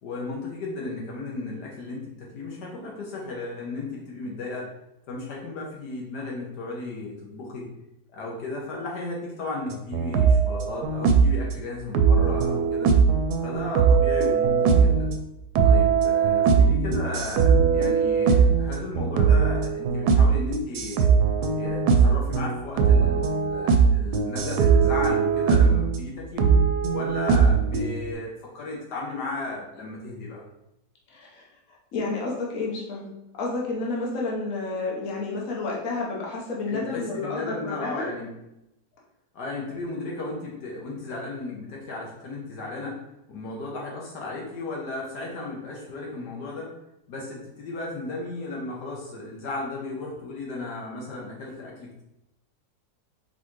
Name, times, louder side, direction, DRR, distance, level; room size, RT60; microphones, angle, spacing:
voice 1, 0.0-4.7 5.1-7.7 8.1-12.9 13.4-15.1 15.6-21.1 21.6-26.5 26.9-30.4 36.7-38.3 39.3-43.0 43.3-46.7 47.1-52.0, left 2 dB, 80° left, -2 dB, 1.5 m, -35 dB
sound 1, 9.7-11.4 11.9-15.2 15.6-26.0 26.4-28.1, right 6 dB, 75° right, 1.1 m, -20 dB
voice 2, 31.1-31.4 31.9-33.1 33.4-38.1, left 3 dB, 55° left, -3 dB, 1.4 m, -30 dB
4.2 x 4.1 x 3.1 m, 0.88 s
omnidirectional pair, 1.8 m